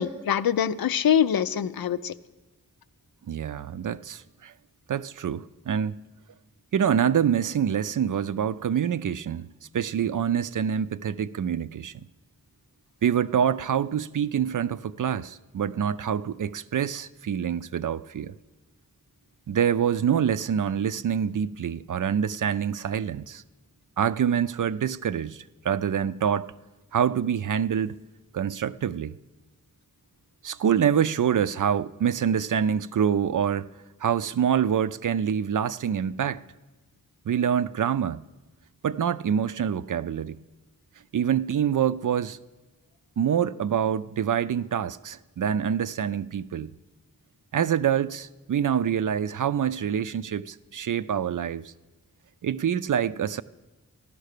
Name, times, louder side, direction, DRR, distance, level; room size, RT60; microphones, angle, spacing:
voice 1, 0.0-2.1, left 9 dB, 80° left, 0.6 m, -24 dB
voice 2, 3.3-4.5 4.9-6.0 6.7-9.5 9.7-11.9 13.0-18.3 19.5-23.4 24.0-26.5 26.9-28.0 28.3-29.1 30.4-33.7 34.0-36.4 37.3-38.2 38.8-40.4 41.1-42.4 43.2-46.7 47.5-51.6 52.4-53.4, right 8 dB, 60° right, 0.5 m, -26 dB
14.5 x 11.5 x 6.6 m
wide cardioid pair, 85°, 35 cm